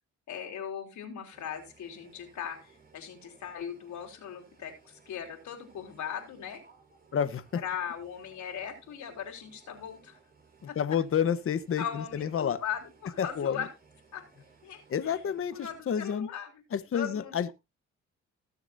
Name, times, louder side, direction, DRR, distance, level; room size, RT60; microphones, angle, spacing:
voice 1, 0.3-6.6 7.6-10.2 10.7-10.8 11.8-13.7 14.1-14.2 14.6-15.2 15.5-16.5 16.9-17.5, left 8 dB, 70° left, 3.9 m, -39 dB
sound 1, 1.3-15.8, right 4 dB, 30° right, 5.0 m, -61 dB
voice 2, 7.1-7.6 10.8-12.6 13.2-13.6 14.9-16.3 16.7-17.5, left 8 dB, 45° left, 1.1 m, -29 dB
20.0 x 7.0 x 2.7 m
cardioid pair, 90°, 30 cm